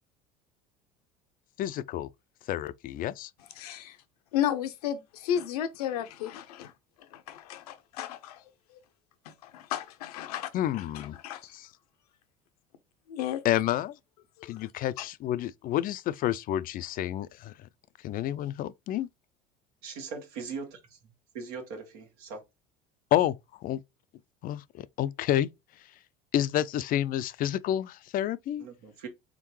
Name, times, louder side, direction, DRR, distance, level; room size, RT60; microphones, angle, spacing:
voice 1, 1.6-2.1 2.5-3.3 10.5-11.2 11.5-11.7 13.4-13.9 14.4-17.5 18.0-19.1 23.1-23.4 23.6-23.8 24.4-25.5 26.3-28.7, left 12 dB, 50° left, 0.4 m, -29 dB
voice 2, 3.6-4.0 4.3-6.7 7.1-8.4 8.7-8.8 9.3-10.5 10.7-11.6 13.1-13.4 14.4-14.6 15.0-15.1, left 10 dB, 85° left, 0.7 m, -33 dB
voice 3, 19.8-21.0 21.3-22.4 28.6-29.1, right 5 dB, 80° right, 1.5 m, -40 dB
3.7 x 3.6 x 3.1 m
hypercardioid pair, 80°, 19 cm